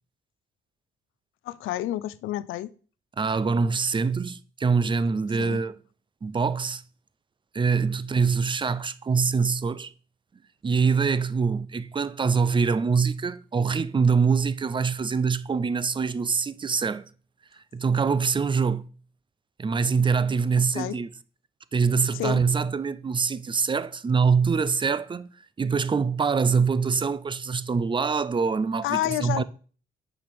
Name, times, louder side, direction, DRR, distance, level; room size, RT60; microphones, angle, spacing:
voice 1, 1.4-2.7 5.4-5.6 20.7-21.0 22.1-22.4 28.8-29.4, left 14 dB, 85° left, 0.5 m, -29 dB
voice 2, 3.2-5.8 6.2-6.8 7.5-9.9 10.6-17.1 17.7-18.8 19.6-21.1 21.7-25.3 25.6-29.4, right 5 dB, 25° right, 0.6 m, -24 dB
8.4 x 5.8 x 5.3 m
cardioid pair, 90°, 20 cm